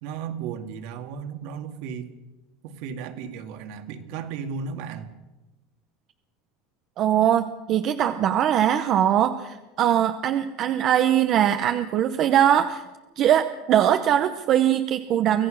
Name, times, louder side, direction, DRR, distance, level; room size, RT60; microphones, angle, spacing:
voice 1, 0.0-2.1 2.6-5.1, right 6 dB, 50° right, 7 dB, 2.0 m, -34 dB
voice 2, 7.0-12.8 13.2-15.5, right 10 dB, 30° right, 9 dB, 0.8 m, -21 dB
25.0 x 17.0 x 6.4 m, 1.1 s
cardioid pair, 175°, 0 cm